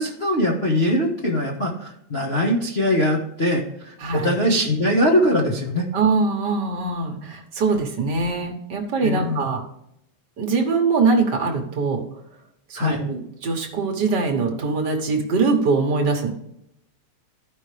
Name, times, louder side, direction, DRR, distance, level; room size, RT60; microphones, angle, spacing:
voice 1, 0.0-5.9 9.0-9.4 12.7-13.0, equal, 70° left, -3 dB, 0.6 m, -22 dB
voice 2, 4.0-4.4 5.9-9.6 10.4-12.0 12.7-16.3, right 4 dB, 55° right, 2 dB, 1.3 m, -22 dB
14.5 x 5.4 x 3.3 m, 0.76 s
omnidirectional pair, 3.4 m